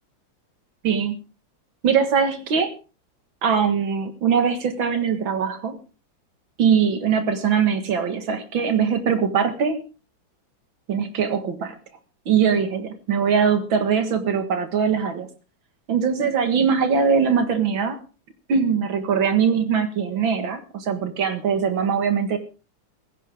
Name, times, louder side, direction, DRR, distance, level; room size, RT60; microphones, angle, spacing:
voice 1, 0.8-1.2 1.8-2.8 3.4-5.8 6.6-9.9 10.9-11.8 12.3-15.3 15.9-18.0 18.5-22.4, right 6 dB, 80° right, 8 dB, 2.5 m, -21 dB
16.0 x 16.0 x 3.6 m, 0.32 s
omnidirectional pair, 2.1 m